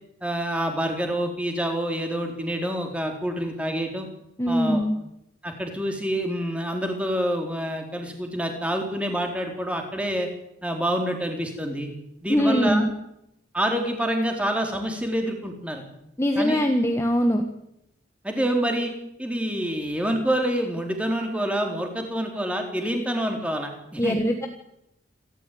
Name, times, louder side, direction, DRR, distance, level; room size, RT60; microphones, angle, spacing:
voice 1, 0.2-4.1 4.5-4.8 5.4-10.3 10.6-11.9 12.2-12.8 13.5-15.8 16.4-16.6 18.2-18.9 19.2-24.2, equal, 5° right, 3 dB, 4.0 m, -27 dB
voice 2, 4.4-4.9 12.3-12.9 16.2-17.4 24.0-24.5, equal, 15° left, 4 dB, 1.7 m, -22 dB
27.5 x 13.5 x 9.5 m, 0.82 s
head